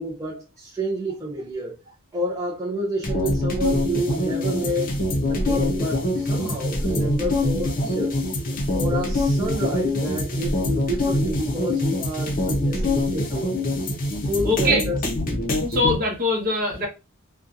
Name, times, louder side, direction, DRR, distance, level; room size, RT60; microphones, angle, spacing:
voice 1, 0.0-1.8 2.1-4.9 5.3-8.2 8.7-13.6 14.2-15.0, equal, 15° right, 0.5 m, -29 dB
sound 1, 3.0-15.9, left 1 dB, 40° left, 0.6 m, -24 dB
voice 2, 14.4-14.8 15.7-16.9, left 1 dB, 45° right, 0.9 m, -22 dB
2.6 x 2.2 x 2.4 m
head